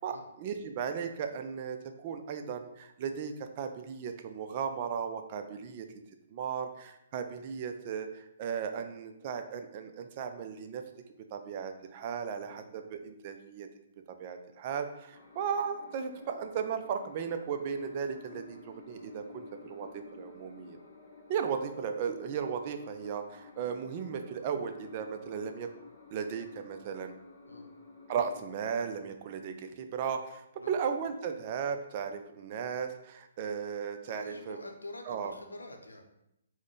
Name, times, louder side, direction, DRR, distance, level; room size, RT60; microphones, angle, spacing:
voice 1, 0.0-5.9 6.3-10.8 11.3-13.7 14.1-20.8 21.3-25.7 26.1-27.1 28.1-34.6 35.1-35.3, right 7 dB, 40° right, 7 dB, 0.4 m, -36 dB
sound 1, 15.1-28.4, left 4 dB, 50° left, 0.8 m, -53 dB
voice 2, 34.1-36.0, left 2 dB, 85° left, 3 dB, 0.6 m, -46 dB
4.1 x 2.1 x 3.0 m, 0.82 s
figure-of-eight pair, 130°, 0 cm